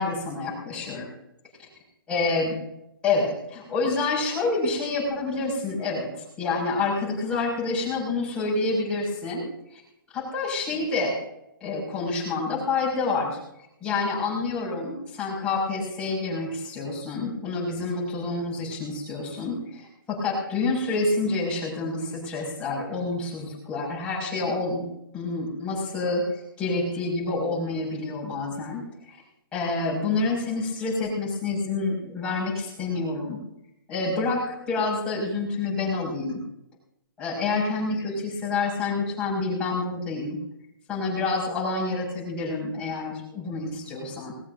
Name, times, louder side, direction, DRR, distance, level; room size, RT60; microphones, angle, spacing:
voice 1, 0.0-1.1 2.1-2.6 3.0-9.8 10.1-11.2 11.6-13.4 13.8-29.2 29.5-33.4 33.9-36.4 37.2-40.4 40.9-44.3, left 3 dB, 10° left, -6 dB, 6.1 m, -28 dB
20.5 x 19.0 x 2.7 m, 0.83 s
hypercardioid pair, 165°, 12 cm